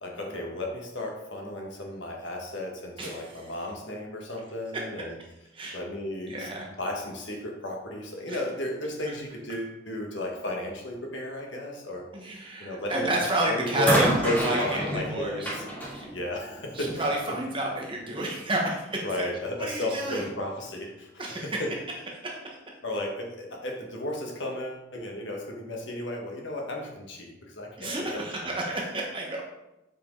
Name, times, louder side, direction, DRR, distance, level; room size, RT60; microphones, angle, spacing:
voice 1, 0.0-5.1 5.7-6.5 6.8-12.1 12.6-13.1 13.5-15.6 16.0-17.1 19.0-21.7 22.8-28.5, left 1 dB, 60° left, 0 dB, 1.5 m, -34 dB
voice 2, 3.0-3.3 5.5-5.8 6.3-6.7 8.3-8.4 12.1-15.5 15.9-16.1 16.7-19.3 19.6-20.2 21.2-21.6 22.2-22.6 27.8-29.4, right 2 dB, 25° right, -1 dB, 1.1 m, -30 dB
sound 1, 12.9-13.2 13.8-17.1 18.1-18.2, equal, 10° left, 1.8 m, -30 dB
7.7 x 4.9 x 3.8 m, 0.93 s
head